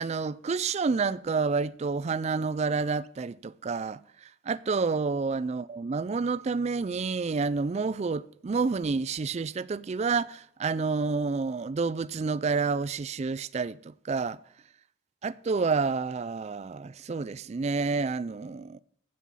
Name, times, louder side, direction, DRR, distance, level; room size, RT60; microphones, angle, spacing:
voice 1, 0.0-14.4 15.2-18.8, right 4 dB, 35° right, 0.3 m, -29 dB
15.0 x 6.1 x 5.6 m
head